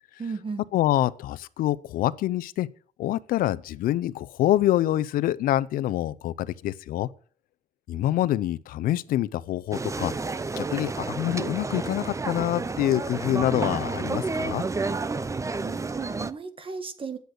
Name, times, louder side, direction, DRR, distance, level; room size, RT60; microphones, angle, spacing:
voice 1, 0.2-0.6 15.6-17.2, right 4 dB, 40° right, 1.9 m, -35 dB
voice 2, 0.7-2.7 3.0-7.1 7.9-10.1 10.6-14.6, left 13 dB, 85° left, 0.6 m, -26 dB
sound 1, 9.7-16.3, right 3 dB, 20° right, 0.7 m, -30 dB
10.5 x 8.0 x 6.5 m
cardioid pair, 90°, 14 cm